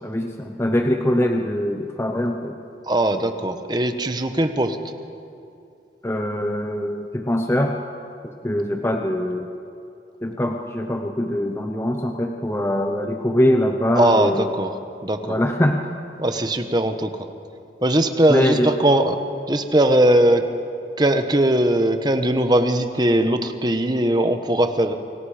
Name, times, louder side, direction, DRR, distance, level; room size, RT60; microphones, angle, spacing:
voice 1, 0.0-2.6 6.0-7.8 8.2-9.5 10.2-14.5 15.2-15.8 18.3-18.7, left 1 dB, 15° left, 3 dB, 0.9 m, -23 dB
voice 2, 2.9-4.8 14.0-14.7 15.0-15.4 16.2-17.1 17.8-19.2 19.5-20.4 21.0-24.9, right 1 dB, 25° right, 7 dB, 1.2 m, -19 dB
29.5 x 23.5 x 5.1 m, 2.5 s
head